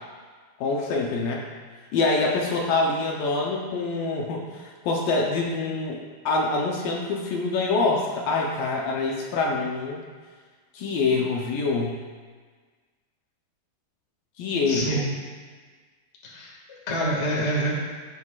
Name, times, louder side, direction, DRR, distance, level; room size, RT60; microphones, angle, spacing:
voice 1, 0.6-1.4 1.9-10.0 10.7-12.0 14.4-15.0, left 3 dB, 75° left, -1 dB, 2.3 m, -25 dB
voice 2, 14.7-15.1 16.2-17.7, right 1 dB, 35° left, -4 dB, 1.0 m, -27 dB
17.0 x 6.4 x 2.4 m, 1.5 s
omnidirectional pair, 4.5 m